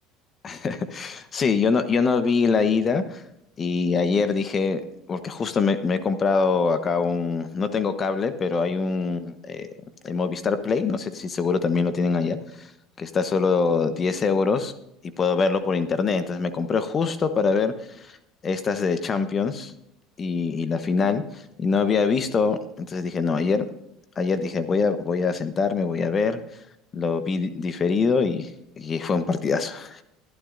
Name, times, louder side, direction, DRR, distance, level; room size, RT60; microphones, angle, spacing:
voice 1, 0.4-3.2 3.6-4.8 5.1-9.7 10.0-12.7 13.0-14.7 15.2-17.7 18.4-19.7 20.2-23.7 24.2-26.4 26.9-28.5 28.8-30.0, left 5 dB, 35° left, 11 dB, 1.0 m, -24 dB
21.5 x 11.5 x 2.6 m, 0.80 s
hypercardioid pair, 75°, 0 cm